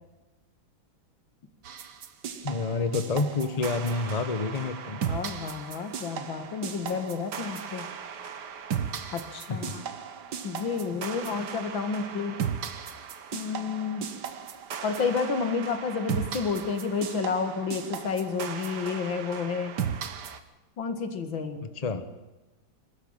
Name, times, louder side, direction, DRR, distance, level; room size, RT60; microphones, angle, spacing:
sound 1, 1.6-20.4, right 7 dB, 60° right, 1.8 m, -36 dB
voice 1, 2.4-5.0 9.5-9.8 21.6-22.0, left 3 dB, 25° left, 10 dB, 1.1 m, -29 dB
voice 2, 5.1-7.9 9.1-9.8 10.4-12.4 13.3-14.1 14.8-19.8 20.8-21.7, left 5 dB, 80° left, 9 dB, 2.6 m, -30 dB
22.5 x 13.0 x 8.9 m, 1.1 s
omnidirectional pair, 2.1 m